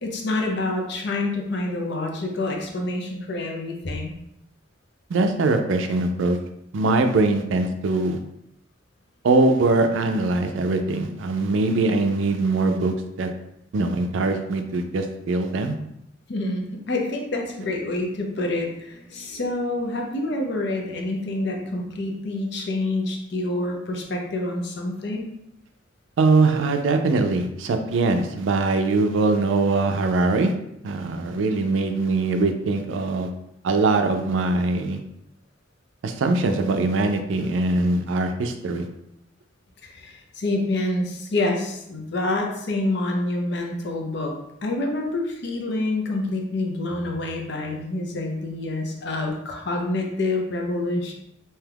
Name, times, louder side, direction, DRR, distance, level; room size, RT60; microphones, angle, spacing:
voice 1, 0.0-4.2 16.3-25.3 39.8-44.3 44.6-51.1, left 2 dB, 60° left, 1 dB, 0.6 m, -27 dB
voice 2, 5.1-6.4 6.7-8.2 9.2-13.3 13.7-15.7 26.2-30.5 30.8-33.3 33.6-35.0 36.0-38.9, right 3 dB, 80° right, 6 dB, 0.4 m, -22 dB
2.8 x 2.3 x 3.3 m, 0.81 s
head